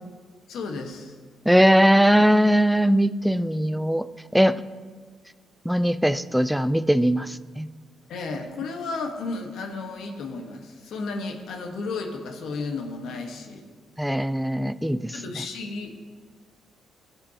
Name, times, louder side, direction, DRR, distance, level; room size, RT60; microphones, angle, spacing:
voice 1, 0.5-1.2 8.1-13.7 15.1-15.9, left 3 dB, 75° left, 3 dB, 1.3 m, -33 dB
voice 2, 1.5-4.0 4.3-4.6 5.7-7.7 14.0-15.1, equal, ahead, 13 dB, 0.4 m, -20 dB
17.5 x 6.9 x 2.9 m, 1.5 s
cardioid pair, 90°, 0 cm